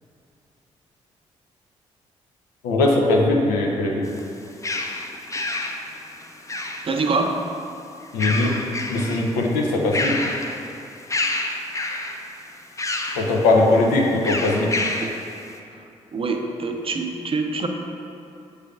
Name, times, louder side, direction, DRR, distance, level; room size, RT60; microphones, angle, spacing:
voice 1, 2.6-4.0 8.1-8.5 8.9-10.1 13.2-14.7, left 2 dB, 85° left, -1 dB, 0.5 m, -20 dB
sound 1, 4.1-7.1 8.0-9.3 9.7-10.7 11.1-12.2 12.8-13.3 14.2-15.2, left 2 dB, 20° left, 0.5 m, -28 dB
voice 2, 6.8-7.4 16.1-17.7, right 3 dB, 40° right, 3 dB, 0.5 m, -24 dB
6.6 x 3.2 x 2.4 m, 2.6 s
hypercardioid pair, 40°, 15 cm